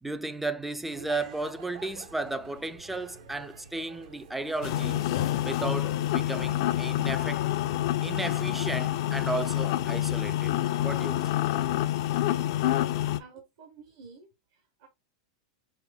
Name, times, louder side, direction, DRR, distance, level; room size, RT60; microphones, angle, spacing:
voice 1, 0.0-5.0 5.4-7.4 8.0-10.5 10.8-11.2, right 2 dB, 5° right, 0.3 m, -34 dB
sound 1, 0.8-7.7, right 5 dB, 80° right, 1.2 m, -49 dB
sound 2, 4.6-13.2, left 13 dB, 65° left, 0.4 m, -27 dB
voice 2, 13.2-14.9, right 5 dB, 60° right, 0.9 m, -51 dB
5.5 x 2.0 x 2.2 m
supercardioid pair, 135°, 3 cm